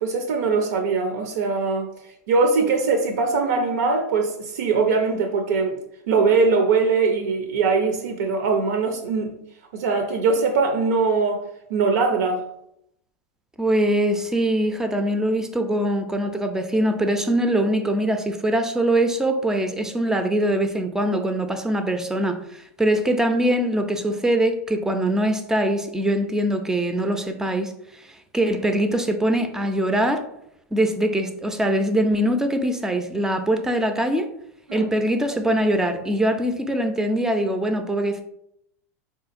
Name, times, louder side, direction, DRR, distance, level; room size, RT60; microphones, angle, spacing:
voice 1, 0.0-1.9 2.3-5.8 6.1-9.3 9.7-11.4 11.7-12.4 34.7-34.9, right 4 dB, 85° right, 4 dB, 0.5 m, -21 dB
voice 2, 13.6-27.7 28.0-28.1 28.3-30.2 30.7-34.3 34.7-38.2, right 1 dB, 5° right, 7 dB, 0.3 m, -22 dB
3.8 x 2.7 x 2.4 m, 0.76 s
supercardioid pair, 130°, 9 cm